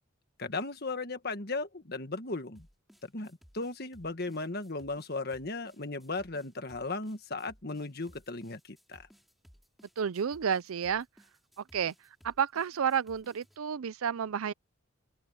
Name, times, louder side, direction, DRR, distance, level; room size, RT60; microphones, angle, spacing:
voice 1, 0.4-2.7 3.0-9.0, left 3 dB, 50° left, 1.6 m, -36 dB
sound 1, 2.6-13.6, equal, ahead, 5.4 m, -60 dB
voice 2, 10.0-11.1 11.7-11.9 12.2-14.5, right 7 dB, 85° right, 0.5 m, -30 dB
open air
head